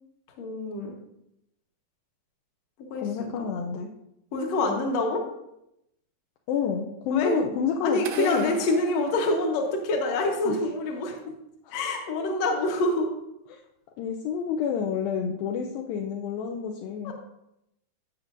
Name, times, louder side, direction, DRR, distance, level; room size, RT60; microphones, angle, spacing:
voice 1, 0.4-0.9 2.9-3.0 4.3-5.2 7.1-7.3 7.8-11.3 11.7-13.1 17.0-17.1, left 2 dB, 60° left, 1 dB, 2.0 m, -26 dB
voice 2, 3.0-3.9 6.5-8.5 10.4-10.6 11.7-11.8 12.2-12.3 13.5-13.6 14.0-17.1, left 7 dB, 80° left, 0 dB, 2.4 m, -29 dB
sound 1, 8.0-10.1, right 8 dB, 75° right, 2.1 m, -40 dB
15.0 x 6.0 x 2.6 m, 0.82 s
omnidirectional pair, 4.2 m